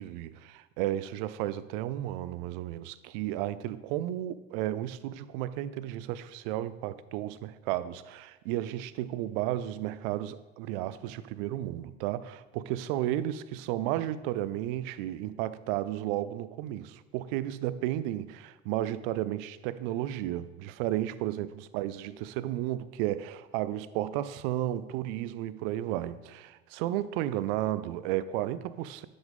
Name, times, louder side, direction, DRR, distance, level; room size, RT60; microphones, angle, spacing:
voice 1, 0.0-29.1, right 13 dB, 55° right, 0.4 m, -33 dB
10.5 x 5.1 x 3.6 m
figure-of-eight pair, 60°, 34 cm